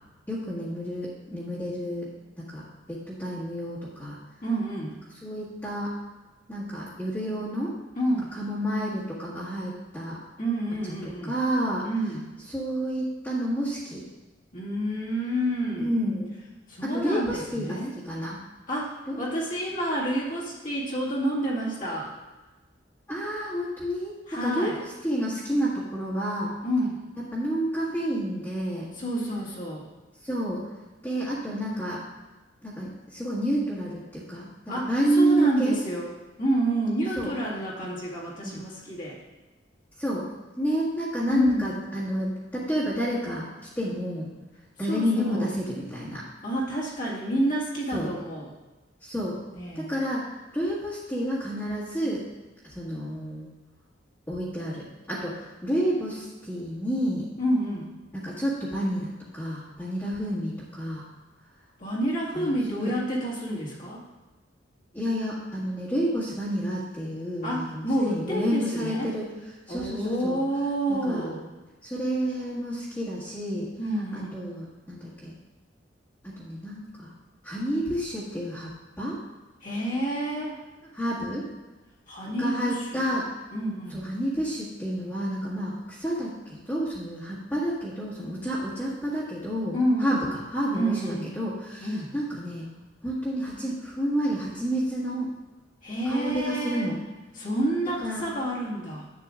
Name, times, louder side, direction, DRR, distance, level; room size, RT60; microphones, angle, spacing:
voice 1, 0.3-2.1 2.4-4.2 5.2-5.9 6.5-7.7 8.3-10.2 11.0-11.8 12.5-14.0 15.8-16.4 16.8-17.8 18.0-18.4 19.1-19.4 23.1-24.7 25.0-26.5 27.3-28.9 30.2-30.6 31.0-32.0 32.6-34.5 34.9-35.7 37.2-37.3 38.4-38.6 40.0-40.3 40.5-43.5 43.7-44.3 44.8-46.2 47.9-48.1 49.0-49.4 49.7-52.2 52.6-53.5 54.3-57.3 58.2-61.0 62.3-62.9 64.9-69.3 69.7-70.4 70.9-71.3 71.8-73.7 74.1-75.4 76.2-77.1 77.4-79.2 80.9-81.5 82.4-83.3 83.9-92.7 93.0-95.3 96.0-97.0 98.0-98.2, right 1 dB, 10° left, -10 dB, 1.7 m, -30 dB
voice 2, 4.4-4.9 8.0-8.3 10.4-11.3 11.8-12.2 14.5-15.9 16.7-17.9 18.7-22.1 24.3-24.8 26.6-27.0 28.9-29.9 34.7-36.1 36.4-39.2 41.3-41.7 44.8-45.5 46.4-48.5 49.5-49.9 57.4-57.9 61.8-64.0 67.4-69.1 69.7-71.4 73.8-74.4 79.6-80.6 82.1-83.0 83.5-84.0 89.7-90.3 90.7-91.3 91.8-92.1 95.8-96.9 97.3-99.1, right 1 dB, 45° left, -6 dB, 2.0 m, -29 dB
11.0 x 8.2 x 2.5 m, 1.2 s
head